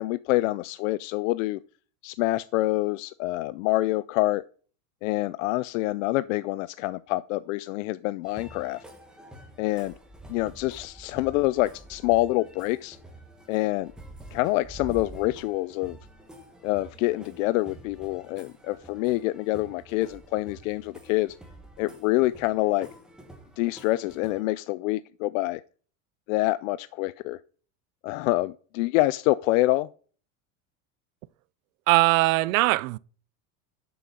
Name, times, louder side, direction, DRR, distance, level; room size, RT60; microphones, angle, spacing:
voice 1, 0.0-1.6 2.0-4.4 5.0-8.8 9.6-9.9 10.3-13.0 13.5-13.9 14.3-16.0 16.6-21.4 21.8-22.9 23.6-25.6 26.3-27.4 28.0-29.9, left 18 dB, 70° left, 0.5 m, -26 dB
sound 1, 8.2-24.4, right 1 dB, ahead, 1.1 m, -47 dB
voice 2, 31.9-33.0, right 22 dB, 75° right, 0.5 m, -21 dB
7.1 x 6.9 x 6.4 m
cardioid pair, 175°, 41 cm